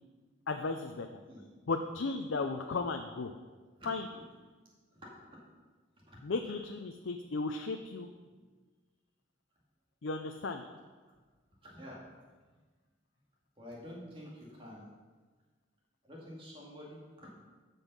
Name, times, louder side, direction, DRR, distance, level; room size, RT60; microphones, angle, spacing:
voice 1, 0.5-1.2 1.7-3.3 3.9-4.0 6.2-8.1 10.0-10.6, left 3 dB, 70° left, 5 dB, 0.5 m, -35 dB
voice 2, 3.8-4.2 4.9-5.4 6.1-6.2 11.6-12.0 12.5-12.6 13.6-14.9 16.0-17.3, equal, 25° right, -4 dB, 2.2 m, -49 dB
13.0 x 5.5 x 5.4 m, 1.4 s
head